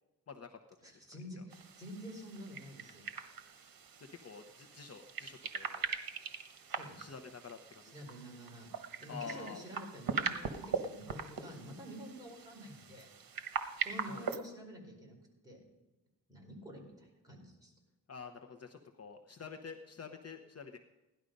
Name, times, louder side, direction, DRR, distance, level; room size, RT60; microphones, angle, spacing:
voice 1, 0.3-0.6 1.4-1.5 4.0-5.9 7.0-7.9 9.1-9.6 14.0-14.3 18.1-20.8, left 5 dB, 40° left, 5 dB, 0.9 m, -48 dB
voice 2, 0.8-3.0 6.7-7.1 7.9-8.7 9.0-13.1 13.8-15.2 15.4-15.6 16.3-17.7, equal, 10° right, -1 dB, 4.6 m, -48 dB
sound 1, 1.5-14.4, right 6 dB, 70° right, 1.2 m, -41 dB
16.5 x 11.5 x 5.3 m, 1.1 s
wide cardioid pair, 120°, 37 cm